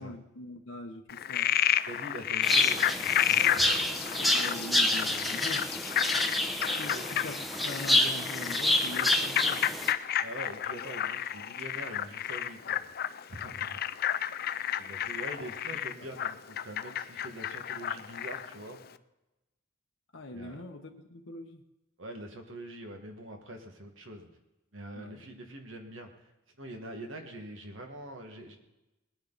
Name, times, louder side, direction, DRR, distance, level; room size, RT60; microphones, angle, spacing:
voice 1, 0.0-1.5 4.2-6.2 6.7-9.6 15.4-15.5 20.1-21.6 25.0-25.2, left 2 dB, 70° left, 3 dB, 1.0 m, -43 dB
Frog, 1.1-18.5, left 11 dB, 50° left, 0.5 m, -31 dB
voice 2, 1.9-4.0 6.8-7.1 10.2-12.8 13.3-13.8 14.8-18.8 20.3-20.6 22.0-24.3 24.7-26.3 26.6-28.6, right 1 dB, 65° right, 4 dB, 1.9 m, -44 dB
sound 1, 2.4-9.9, left 1 dB, ahead, 0.9 m, -28 dB
20.5 x 10.0 x 4.1 m, 0.98 s
head